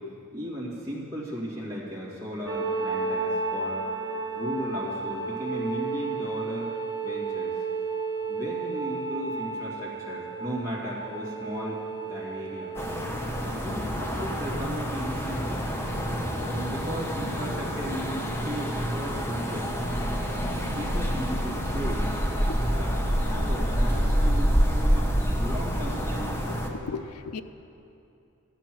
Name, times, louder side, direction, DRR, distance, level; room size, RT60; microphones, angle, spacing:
voice 1, 0.3-3.8 4.4-6.7 7.0-7.5 8.3-12.7 13.4-15.6 16.4-19.7 20.4-22.3 22.7-24.5 24.9-25.1 25.4-26.5, equal, 15° right, -8 dB, 2.3 m, -36 dB
sound 1, 2.5-13.0, right 4 dB, 60° right, 1.7 m, -32 dB
sound 2, 12.7-26.7, equal, 10° left, 1.0 m, -27 dB
voice 2, 26.5-27.4, left 5 dB, 80° left, 10 dB, 0.5 m, -37 dB
13.5 x 9.0 x 6.1 m, 2.7 s
head